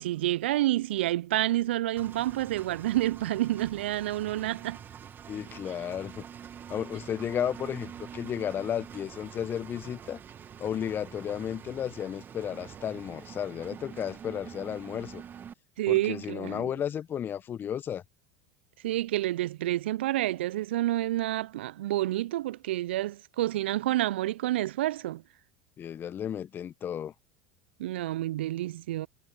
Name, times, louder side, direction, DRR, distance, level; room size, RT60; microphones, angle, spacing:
voice 1, 0.0-4.8 15.8-16.7 18.8-25.2 27.8-29.1, right 15 dB, 75° right, 0.4 m, -29 dB
Engine, 2.0-15.5, right 8 dB, 35° right, 1.8 m, -46 dB
voice 2, 5.3-6.2 6.7-10.2 10.6-15.2 15.9-18.0 25.8-27.1, left 9 dB, 35° left, 1.2 m, -33 dB
hypercardioid pair, 80°, 6 cm